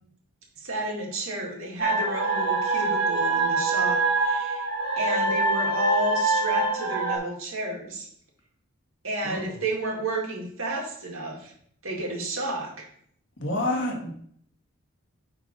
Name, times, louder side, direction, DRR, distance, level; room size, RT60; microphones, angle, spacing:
voice 1, 0.6-4.7 5.0-8.1 9.0-11.5 11.8-12.9, right 1 dB, 70° right, -2 dB, 2.3 m, -31 dB
sound 1, 1.8-7.2, right 3 dB, 50° right, 2.0 m, -25 dB
voice 2, 13.4-14.1, left 1 dB, 55° left, 1 dB, 1.6 m, -28 dB
7.9 x 4.0 x 5.4 m, 0.64 s
head